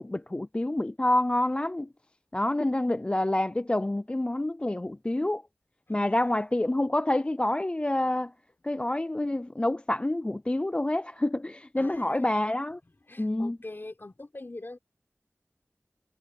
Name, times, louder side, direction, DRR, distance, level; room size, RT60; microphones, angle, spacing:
voice 1, 0.0-1.9 2.3-5.4 5.9-8.3 8.6-12.8 13.2-13.6, left 1 dB, 20° left, 0.3 m, -27 dB
voice 2, 5.9-6.4 11.8-12.3 12.8-14.8, left 2 dB, 45° left, 4.0 m, -44 dB
wide cardioid pair, 60°, 5 cm